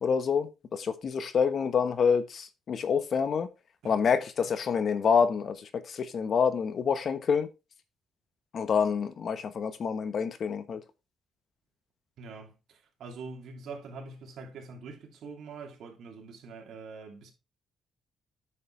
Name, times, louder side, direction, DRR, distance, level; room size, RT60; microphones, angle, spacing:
voice 1, 0.0-3.5 3.8-7.5 8.5-10.8, left 6 dB, 55° left, 1.1 m, -27 dB
voice 2, 12.2-17.3, right 4 dB, 70° right, 2.8 m, -44 dB
9.3 x 6.6 x 3.3 m
cardioid pair, 90°, 0 cm